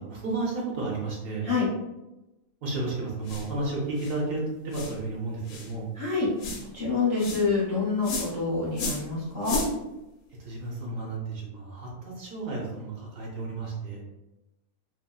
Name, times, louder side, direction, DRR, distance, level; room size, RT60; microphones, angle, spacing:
voice 1, 0.0-1.5 2.6-5.9 10.4-14.0, right 3 dB, 70° right, -4 dB, 1.2 m, -32 dB
sound 1, 3.2-3.5 4.0-4.2 4.7-5.0 5.5-5.7 6.4-6.6 7.2-7.4 8.0-8.3 8.7-9.1 9.4-9.7, left 2 dB, 90° left, 1.1 m, -32 dB
voice 2, 6.0-6.3 6.7-9.6, left 4 dB, 25° left, -7 dB, 0.7 m, -27 dB
3.7 x 2.1 x 2.3 m, 0.97 s
omnidirectional pair, 1.5 m